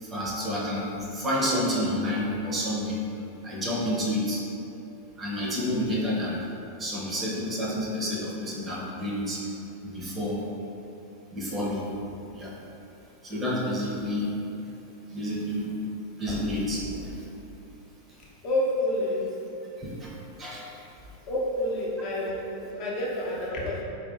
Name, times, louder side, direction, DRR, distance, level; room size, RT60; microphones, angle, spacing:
voice 1, 0.0-3.0 3.4-4.4 5.2-6.4 6.8-9.4 9.8-10.4 11.3-11.8 12.3-12.5 13.2-14.3 15.1-15.7 16.2-17.2 19.8-20.1 20.4-20.7, left 1 dB, 20° right, -4 dB, 0.6 m, -29 dB
voice 2, 18.4-19.2 21.3-23.8, left 1 dB, 40° left, -4 dB, 0.6 m, -28 dB
4.4 x 2.6 x 2.4 m, 2.8 s
figure-of-eight pair, 90°, 0 cm